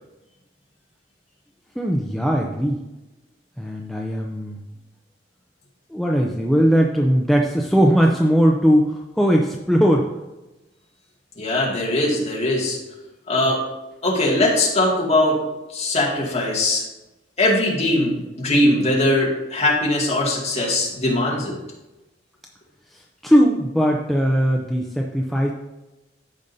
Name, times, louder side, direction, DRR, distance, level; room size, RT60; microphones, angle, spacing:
voice 1, 1.8-2.8 3.6-4.6 5.9-10.1 22.9-25.5, equal, ahead, -1 dB, 0.5 m, -19 dB
voice 2, 11.4-12.8 13.3-13.6 14.0-15.4 15.7-16.8 17.4-21.5, left 1 dB, 35° left, -4 dB, 2.2 m, -20 dB
14.0 x 5.2 x 2.7 m, 1.0 s
head